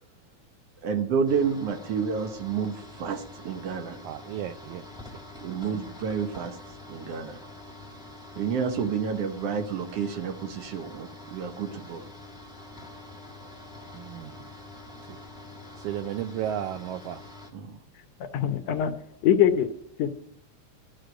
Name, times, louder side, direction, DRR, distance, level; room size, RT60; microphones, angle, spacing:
voice 1, 0.8-4.0 5.4-6.6 6.9-7.4 8.4-12.0 17.5-17.8, right 6 dB, 65° right, 7 dB, 1.8 m, -30 dB
sound 1, 1.3-17.5, left 2 dB, 5° right, 0.5 m, -46 dB
voice 2, 4.0-4.8 5.1-5.2 5.7-5.8 13.9-14.5 15.0-15.2 15.8-17.3, right 11 dB, 85° right, 11 dB, 1.3 m, -34 dB
voice 3, 18.2-18.9 19.2-19.7 20.0-20.1, left 9 dB, 70° left, 9 dB, 1.9 m, -22 dB
12.5 x 6.5 x 7.8 m, 0.69 s
omnidirectional pair, 3.3 m